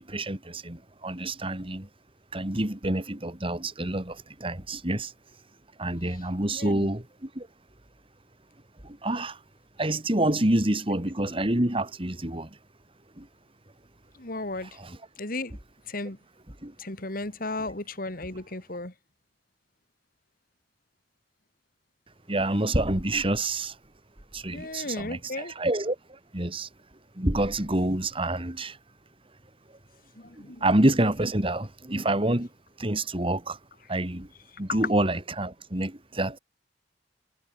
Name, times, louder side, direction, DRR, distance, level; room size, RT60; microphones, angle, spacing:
voice 1, 0.0-1.9 2.3-5.1 5.8-7.5 8.8-9.4 9.8-12.5 13.2-13.3 14.6-15.0 16.6-16.7 22.3-23.8 24.3-26.7 27.2-28.8 30.6-32.5 32.8-33.6 33.9-34.3 34.6-36.4, right 1 dB, 30° right, 2.6 m, -27 dB
voice 2, 6.5-6.9 14.2-14.7 15.2-15.6 15.9-16.2 16.8-18.9 24.5-25.5 30.2-30.7 34.7-34.8, left 2 dB, 55° left, 3.1 m, -35 dB
head